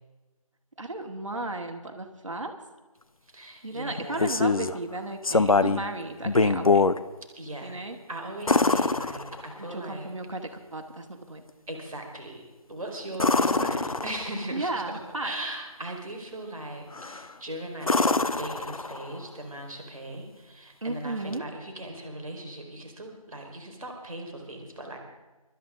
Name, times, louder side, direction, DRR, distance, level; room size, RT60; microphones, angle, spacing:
voice 1, 0.8-2.5 3.6-6.9 7.6-8.0 9.6-11.4 13.4-13.8 14.5-15.3 20.8-21.5, right 2 dB, 55° right, 3 dB, 2.1 m, -34 dB
voice 2, 3.3-4.4 7.3-7.7 8.1-10.1 11.7-12.4 12.7-14.8 15.2-25.0, right 1 dB, 5° right, -17 dB, 1.1 m, -39 dB
sound 1, 3.9-4.8 5.2-5.9 6.2-7.0 8.5-9.7 13.1-14.5 16.9-17.3 17.8-19.2 21.3-21.4, left 3 dB, 70° left, 0.8 m, -24 dB
25.0 x 13.0 x 3.7 m, 1.2 s
figure-of-eight pair, 175°, 19 cm